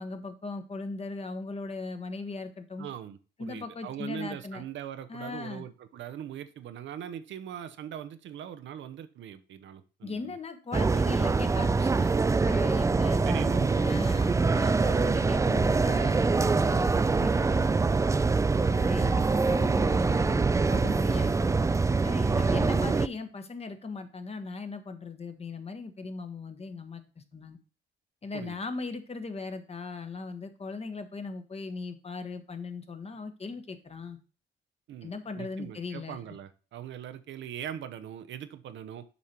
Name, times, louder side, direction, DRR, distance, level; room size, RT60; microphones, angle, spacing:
voice 1, 0.0-2.9 3.4-4.6 5.1-5.6 10.0-17.8 18.7-27.6 28.2-34.2 35.0-36.2, left 3 dB, 30° left, 1.2 m, -38 dB
voice 2, 2.8-10.4 13.2-14.2 22.2-22.6 28.3-28.6 34.9-39.0, right 9 dB, 70° right, 0.8 m, -41 dB
sound 1, 10.7-23.1, right 4 dB, 15° right, 0.3 m, -24 dB
7.1 x 4.9 x 4.4 m
cardioid pair, 90°, 20 cm